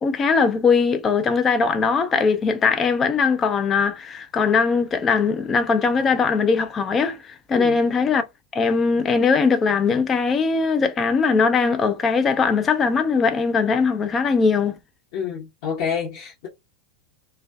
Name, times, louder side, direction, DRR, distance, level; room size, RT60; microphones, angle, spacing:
voice 1, 0.0-8.2 8.5-14.8, left 5 dB, 20° left, 0.4 m, -20 dB
voice 2, 15.1-16.5, left 7 dB, 50° left, 0.7 m, -28 dB
2.5 x 2.2 x 2.2 m
figure-of-eight pair, 90°, 0 cm